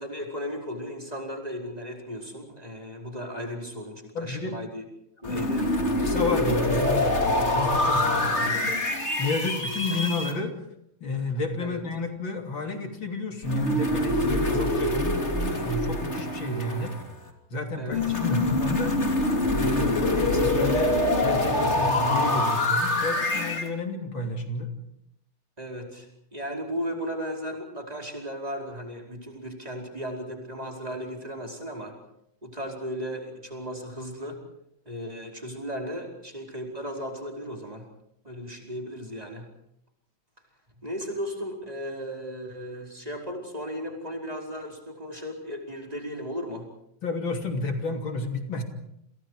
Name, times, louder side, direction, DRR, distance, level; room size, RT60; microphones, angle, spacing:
voice 1, 0.0-4.8 5.2-5.7 8.4-8.8 9.9-10.0 11.6-11.8 17.8-18.2 25.6-32.0 32.4-34.4 34.9-37.9 38.2-39.5 40.8-46.7, equal, 20° right, 1 dB, 5.1 m, -36 dB
voice 2, 4.2-4.6 5.2-5.4 6.0-8.8 9.2-10.5 11.0-16.9 17.5-24.7 47.0-48.6, left 2 dB, 70° left, 4 dB, 3.8 m, -31 dB
sound 1, 5.2-10.3 13.4-17.2 17.9-23.7, left 1 dB, 35° left, 3.4 m, -25 dB
29.5 x 28.0 x 5.0 m, 0.76 s
omnidirectional pair, 2.2 m